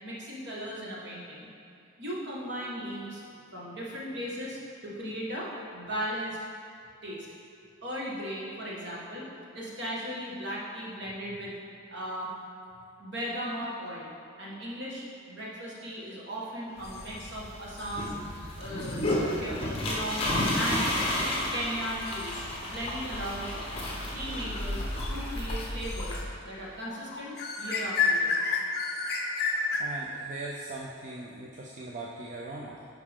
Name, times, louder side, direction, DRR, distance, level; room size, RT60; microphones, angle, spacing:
voice 1, 0.0-1.5 2.0-3.2 3.5-6.4 7.0-7.3 7.8-9.3 9.5-11.5 11.9-12.3 13.0-14.1 14.4-18.1 18.6-20.9 21.5-23.5 24.1-24.8 25.1-28.4, equal, 55° right, -5 dB, 1.6 m, -37 dB
sound 1, 16.8-17.3 17.8-18.1 18.8-19.2 20.4-20.8 22.1-22.5 25.8-26.2 26.5-26.6 26.8-29.8, left 4 dB, 50° left, 0.7 m, -31 dB
sound 2, 16.8-26.2, left 1 dB, 25° left, 1.0 m, -32 dB
voice 2, 29.8-32.9, right 2 dB, 35° right, -3 dB, 0.5 m, -40 dB
9.8 x 4.8 x 3.6 m, 2.6 s
head